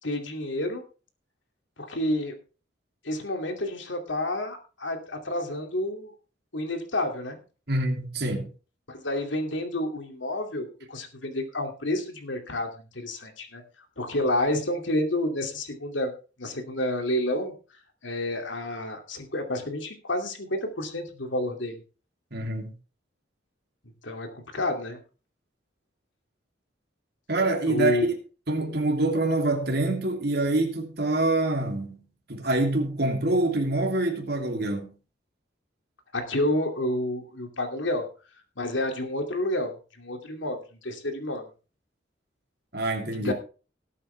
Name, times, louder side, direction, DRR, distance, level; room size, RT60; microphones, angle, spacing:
voice 1, 0.0-0.8 1.8-2.3 3.0-6.1 6.5-7.4 8.9-13.6 14.0-16.1 16.4-17.5 18.0-21.8 24.0-25.0 27.6-28.1 36.1-38.1 38.6-40.6 40.8-41.4 43.2-43.3, left 1 dB, 75° left, 2.6 m, -29 dB
voice 2, 7.7-8.5 22.3-22.7 27.3-28.1 28.5-32.0 32.3-34.9 42.7-43.3, right 2 dB, 55° right, 3.0 m, -26 dB
18.5 x 8.4 x 3.4 m
head